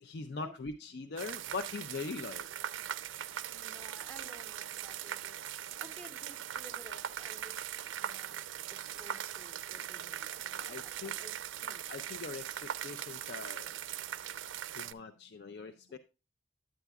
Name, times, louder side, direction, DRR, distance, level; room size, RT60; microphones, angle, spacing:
voice 1, 0.0-2.5 10.6-11.1 11.9-13.7 14.8-16.0, left 4 dB, 55° left, 0.4 m, -42 dB
sound 1, 1.2-14.9, right 10 dB, 80° right, 0.4 m, -40 dB
voice 2, 3.5-8.4 8.7-11.8 15.9-16.0, right 1 dB, 10° left, 0.8 m, -55 dB
9.3 x 9.0 x 2.3 m
head